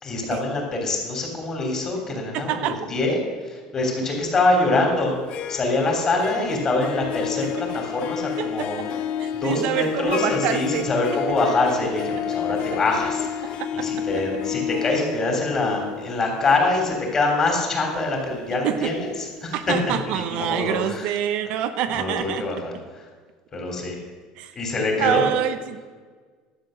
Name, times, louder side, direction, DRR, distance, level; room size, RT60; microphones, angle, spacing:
voice 1, 0.0-5.1 5.5-8.8 9.3-21.2 21.9-23.0 23.5-24.0 24.5-25.2, left 2 dB, 25° left, 1 dB, 3.3 m, -24 dB
voice 2, 2.3-2.8 8.4-8.9 9.2-10.9 11.3-11.4 13.6-14.1 18.6-18.9 19.5-22.4 24.4-24.5 25.0-25.9, right 10 dB, 65° right, 9 dB, 0.8 m, -26 dB
Harp, 5.1-19.1, left 9 dB, 50° left, 0.7 m, -31 dB
12.0 x 7.7 x 6.5 m, 1.5 s
cardioid pair, 140°, 2 cm